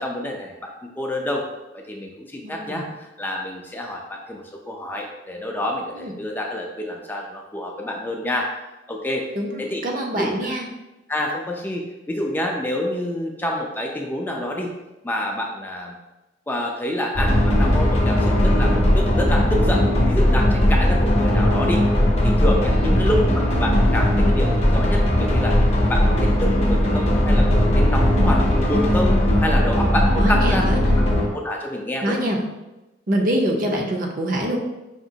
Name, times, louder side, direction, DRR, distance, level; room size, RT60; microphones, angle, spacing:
voice 1, 0.0-1.4 1.7-8.5 8.9-9.3 9.6-9.8 10.2-10.3 11.1-14.7 15.0-16.0 16.5-21.8 22.2-25.6 25.9-30.8 31.3-32.2, left 1 dB, 10° left, 0 dB, 0.4 m, -28 dB
voice 2, 2.4-2.9 5.9-6.1 9.3-10.7 22.7-22.9 30.2-31.0 32.0-32.4 33.1-34.6, right 1 dB, 50° right, 1 dB, 0.6 m, -25 dB
sound 1, 17.2-31.3, left 1 dB, 35° left, 0.7 m, -18 dB
5.1 x 2.8 x 2.7 m, 1.0 s
head